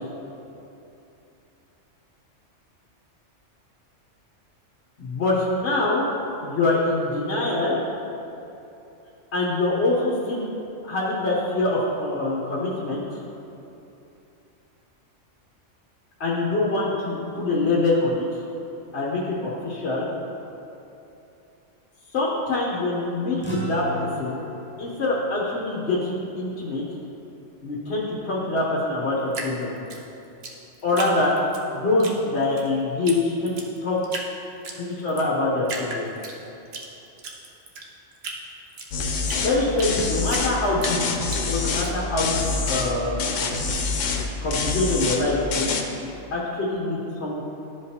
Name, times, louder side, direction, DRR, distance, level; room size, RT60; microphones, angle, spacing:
voice 1, 5.0-6.0 6.4-7.8 9.3-10.5 10.8-13.2 16.2-18.4 18.9-20.1 22.1-24.4 24.8-26.8 27.6-29.7 30.8-31.3 31.7-34.0 34.7-36.1 39.4-42.4 42.7-43.3 44.4-45.7 46.0-47.4, left 2 dB, 60° left, -5 dB, 1.2 m, -24 dB
sound 1, 23.4-28.1, equal, 15° left, 0.5 m, -37 dB
Drip, 29.3-31.6 32.0-32.7 33.1-33.2 33.5-34.3 34.6-35.3 35.6-36.9 37.2-40.0 40.3-41.9, right 3 dB, 60° right, 1.0 m, -35 dB
sound 2, 38.9-39.5 39.8-40.5 40.8-41.9 42.2-42.9 43.2-44.2 44.5-45.2 45.5-45.8, left 4 dB, 80° left, 1.1 m, -26 dB
12.5 x 5.0 x 2.8 m, 2.9 s
omnidirectional pair, 1.3 m